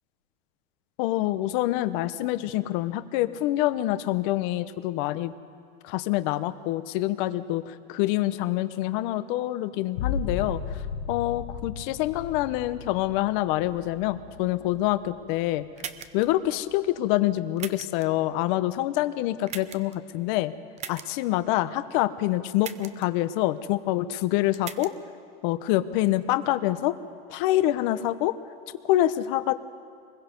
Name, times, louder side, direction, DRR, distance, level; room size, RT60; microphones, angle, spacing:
voice 1, 1.0-5.3 5.8-10.8 11.1-15.7 16.1-20.5 20.9-24.9 25.4-27.0 27.3-28.4 28.8-29.5, left 15 dB, 55° left, 12 dB, 0.9 m, -26 dB
sound 1, 9.9-15.4 15.9-16.5, left 6 dB, 75° left, 1.8 m, -35 dB
sound 2, 15.8-16.3 17.6-18.0 19.5-19.9 20.8-21.1 22.6-23.1 24.5-24.9, right 8 dB, 25° right, 0.6 m, -38 dB
24.0 x 21.0 x 5.3 m, 2.2 s
supercardioid pair, 145°, 30 cm